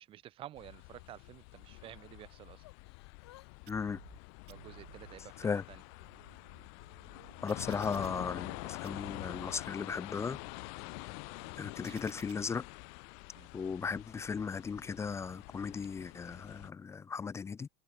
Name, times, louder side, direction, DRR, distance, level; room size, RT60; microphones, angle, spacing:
voice 1, 0.0-2.6 4.5-5.8 13.3-13.5, right 13 dB, 40° right, 1.4 m, -51 dB
sound 1, 0.6-16.7, left 40 dB or more, 60° left, 0.8 m, -47 dB
Yell / Crying sobbing, 0.7-2.0 2.6-3.5 3.8-5.1 5.7-7.3 8.0-8.2, left 15 dB, 80° left, 3.6 m, -64 dB
voice 2, 3.7-4.0 5.4-5.6 7.4-10.4 11.6-12.7 13.5-17.7, left 5 dB, 20° left, 0.7 m, -36 dB
sound 2, 3.7-4.2 4.5-5.2 5.8-8.6 8.8-9.6 10.1-12.3, right 18 dB, 75° right, 2.3 m, -57 dB
hypercardioid pair, 95°, 14 cm